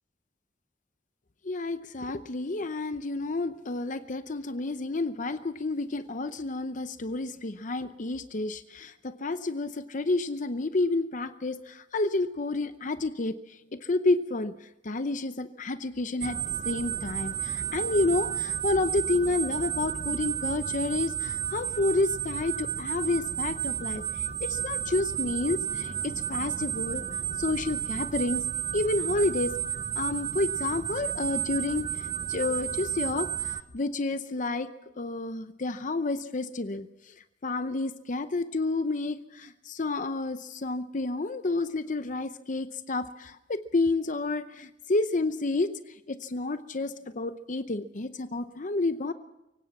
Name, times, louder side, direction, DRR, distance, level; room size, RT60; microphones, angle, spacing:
voice 1, 1.4-16.4 16.6-27.0 27.4-28.4 28.7-29.5 30.0-34.7 35.0-37.1 37.4-49.1, left 2 dB, 45° left, 11 dB, 0.7 m, -30 dB
sound 1, 16.2-33.6, right 11 dB, 35° right, 0.7 m, -32 dB
24.0 x 17.0 x 7.2 m, 0.90 s
head